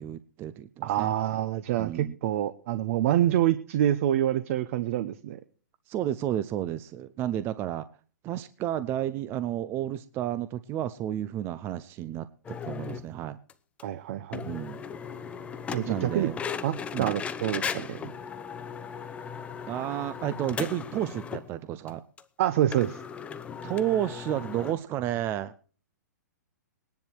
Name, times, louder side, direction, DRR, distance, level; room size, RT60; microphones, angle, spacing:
voice 1, 0.0-1.1 1.8-2.1 5.9-7.9 8.2-13.4 14.4-14.8 15.9-16.3 16.9-17.1 19.7-22.0 23.6-25.5, right 12 dB, 25° right, 14 dB, 0.6 m, -31 dB
voice 2, 0.8-5.4 13.8-14.4 15.7-16.3 16.6-18.1 22.4-23.0, right 12 dB, 45° right, 12 dB, 0.9 m, -27 dB
sound 1, 12.4-13.1 13.5-13.6 13.8-13.9 14.3-21.5 21.9-22.0 22.2-22.3 22.7-24.7, left 6 dB, 10° left, 0.8 m, -37 dB
19.5 x 10.5 x 4.7 m, 0.41 s
hypercardioid pair, 140°, 10 cm